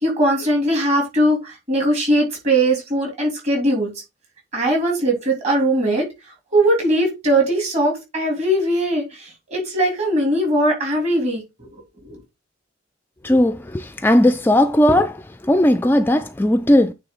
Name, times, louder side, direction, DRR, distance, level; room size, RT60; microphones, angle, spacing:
voice 1, 0.0-3.9 4.5-6.0 6.5-11.7 12.0-12.2, right 1 dB, 35° right, 2.9 m, -20 dB
voice 2, 13.2-15.2 15.5-16.9, left 1 dB, 10° left, 0.3 m, -16 dB
8.9 x 3.7 x 3.8 m
head